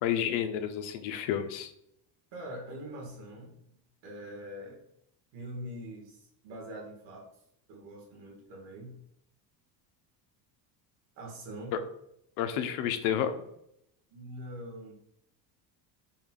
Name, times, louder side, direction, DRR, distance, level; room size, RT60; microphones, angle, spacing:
voice 1, 0.0-1.7 11.7-11.8 12.4-13.4, left 9 dB, 75° left, 8 dB, 0.7 m, -30 dB
voice 2, 2.3-4.8 5.3-7.3 7.7-9.0 11.1-11.8 14.1-14.9, equal, 70° right, 0 dB, 1.7 m, -43 dB
5.3 x 2.3 x 3.7 m, 0.74 s
cardioid pair, 180°, 45 cm